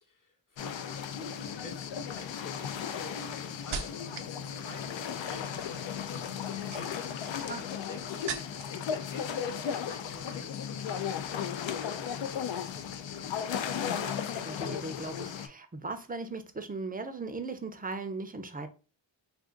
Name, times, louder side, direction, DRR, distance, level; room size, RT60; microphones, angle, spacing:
voice 1, 0.0-7.0 7.3-9.3 9.6-13.5, left 3 dB, 40° left, 1.0 m, -50 dB
sound 1, 0.6-15.5, left 8 dB, 65° left, 0.5 m, -35 dB
sound 2, 0.9-1.3 2.0-4.4 4.7-5.2 6.4-8.8 9.1-9.8 10.1-10.3, right 7 dB, 75° right, 0.6 m, -42 dB
voice 2, 14.0-18.7, right 3 dB, 20° right, 0.5 m, -38 dB
2.5 x 2.4 x 3.7 m
cardioid pair, 50°, 49 cm